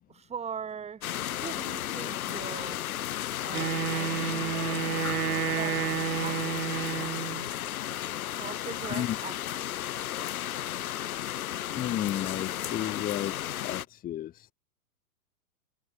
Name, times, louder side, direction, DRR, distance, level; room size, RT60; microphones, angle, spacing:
voice 1, 0.1-1.1 1.4-2.8 3.4-5.0 5.4-5.8 6.2-6.7 8.4-9.7, right 7 dB, 15° right, 3.9 m, -41 dB
sound 1, 1.0-13.9, left 12 dB, 70° left, 1.3 m, -34 dB
Wind instrument woodwind instrument, 3.5-7.5, right 9 dB, 80° right, 3.5 m, -31 dB
voice 2, 11.8-13.3 13.6-14.5, left 12 dB, 20° left, 1.4 m, -32 dB
hypercardioid pair, 135°, 44 cm